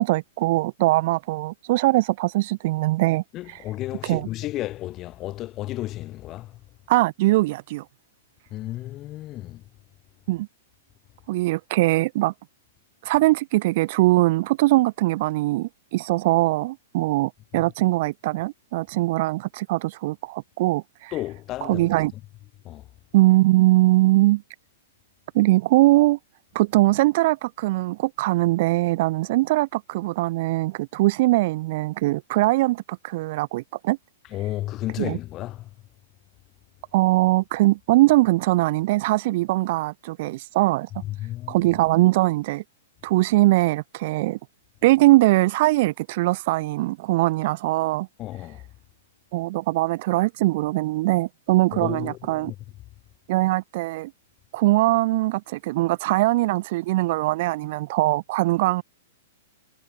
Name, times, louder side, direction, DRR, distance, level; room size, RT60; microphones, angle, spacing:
voice 1, 0.0-3.2 3.5-3.6 4.0-4.3 6.9-7.8 10.3-10.5 11.3-12.3 13.0-21.1 21.6-22.1 23.1-24.4 25.3-26.2 26.5-34.0 35.0-35.2 36.9-40.9 41.5-42.6 43.0-44.4 44.8-48.1 49.3-52.5 53.3-54.1 54.5-58.8, right 19 dB, 50° right, 0.3 m, -21 dB
voice 2, 3.3-6.6 8.5-9.6 17.5-17.7 21.1-21.9 22.6-22.9 34.3-35.7 41.0-41.6 48.2-48.6 51.7-52.6, left 15 dB, 25° left, 3.4 m, -33 dB
hypercardioid pair, 150°, 0 cm